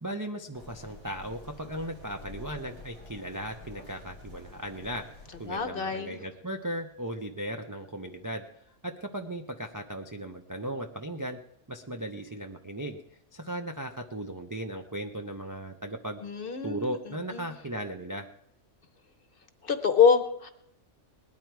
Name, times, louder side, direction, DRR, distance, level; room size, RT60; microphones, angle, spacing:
voice 1, 0.0-8.4 8.8-11.4 11.7-13.0 13.3-16.2 16.6-18.3, right 1 dB, 25° right, 3 dB, 0.4 m, -37 dB
sound 1, 0.5-5.6, left 2 dB, 70° right, 4.8 m, -48 dB
voice 2, 5.5-6.2 16.2-17.0 17.3-17.5 19.6-20.5, left 6 dB, 45° left, 8 dB, 1.0 m, -25 dB
19.5 x 10.5 x 4.6 m, 0.76 s
omnidirectional pair, 1.5 m